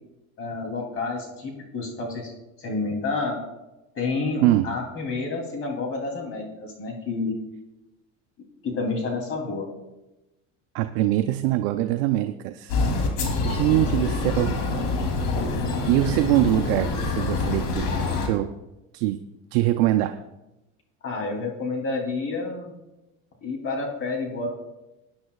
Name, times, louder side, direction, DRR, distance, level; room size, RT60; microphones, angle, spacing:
voice 1, 0.4-2.3 2.6-3.4 3.9-7.4 8.6-9.7 13.7-14.1 21.0-22.7 23.4-24.5, left 3 dB, 40° left, 1 dB, 3.0 m, -29 dB
voice 2, 10.7-12.7 13.4-14.6 15.9-17.9 18.2-18.5 18.9-19.2 19.5-20.2, right 15 dB, 80° right, 7 dB, 0.6 m, -23 dB
sound 1, 12.7-18.3, left 3 dB, 65° left, 2.9 m, -26 dB
20.0 x 9.6 x 2.3 m, 1.0 s
supercardioid pair, 115°, 34 cm